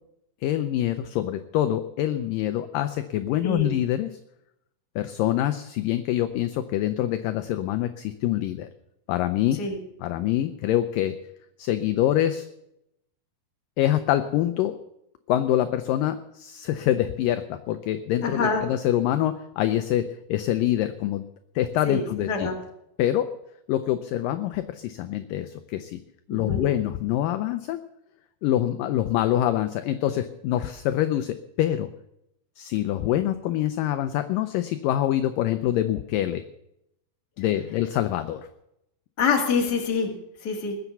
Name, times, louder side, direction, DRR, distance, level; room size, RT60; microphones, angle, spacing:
voice 1, 0.4-4.1 5.0-8.7 9.1-9.6 10.0-11.2 11.6-12.5 13.8-14.8 15.3-21.2 21.6-22.5 23.0-23.3 23.7-26.0 26.3-27.8 28.4-31.9 32.6-36.4 37.4-38.5, left 12 dB, 80° left, 10 dB, 2.1 m, -25 dB
voice 2, 18.2-18.7 21.8-22.6 26.3-26.6 39.2-40.1 40.4-40.8, left 4 dB, 30° left, 2 dB, 2.0 m, -26 dB
20.0 x 8.0 x 7.1 m, 0.82 s
omnidirectional pair, 4.4 m